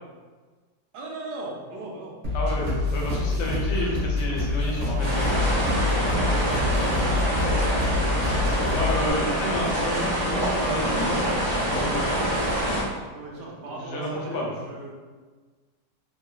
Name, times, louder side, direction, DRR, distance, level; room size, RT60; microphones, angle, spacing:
voice 1, 0.9-2.2 3.0-3.7 6.0-8.1 13.1-14.9, right 2 dB, 80° right, -2 dB, 1.2 m, -37 dB
sound 1, 2.2-9.1, left 2 dB, 45° right, 1.1 m, -26 dB
voice 2, 2.3-6.0 8.7-12.8 13.8-14.5, left 1 dB, 80° left, -2 dB, 1.3 m, -31 dB
sound 2, 5.0-12.8, equal, 25° right, 0.8 m, -25 dB
3.0 x 3.0 x 2.3 m, 1.4 s
omnidirectional pair, 1.9 m